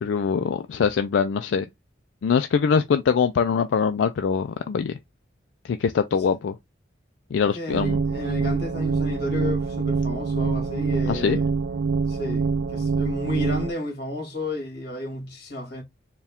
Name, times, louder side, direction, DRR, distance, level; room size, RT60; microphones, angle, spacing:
voice 1, 0.0-1.7 2.2-4.9 5.6-6.6 7.3-8.0 11.1-11.4, left 6 dB, 85° left, 0.4 m, -23 dB
voice 2, 7.5-11.5 12.1-15.8, left 2 dB, 60° left, 1.9 m, -32 dB
sound 1, 7.7-13.7, right 4 dB, 85° right, 0.5 m, -25 dB
4.4 x 2.3 x 3.5 m
head